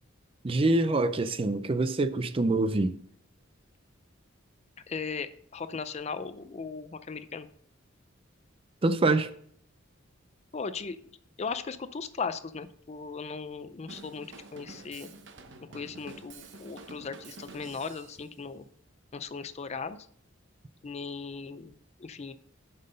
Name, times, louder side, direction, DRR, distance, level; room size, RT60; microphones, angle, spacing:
voice 1, 0.4-3.0 8.8-9.3, right 2 dB, 25° right, 0.4 m, -25 dB
voice 2, 4.9-7.5 10.5-11.0 11.4-14.3 14.5-15.1 15.7-18.7 19.1-20.0 20.8-22.3, left 5 dB, 35° left, 0.4 m, -37 dB
Drum kit / Drum, 13.9-18.3, right 3 dB, 60° right, 0.9 m, -48 dB
7.7 x 5.6 x 5.3 m
head